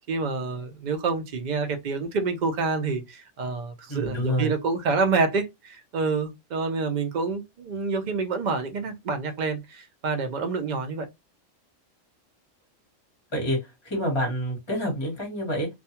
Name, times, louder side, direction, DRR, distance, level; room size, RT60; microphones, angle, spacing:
voice 1, 0.1-11.1, right 4 dB, 60° right, 0.5 m, -27 dB
voice 2, 3.9-4.5 13.3-13.6 13.8-15.7, equal, 20° left, 1.1 m, -27 dB
2.4 x 2.3 x 2.8 m
omnidirectional pair, 1.3 m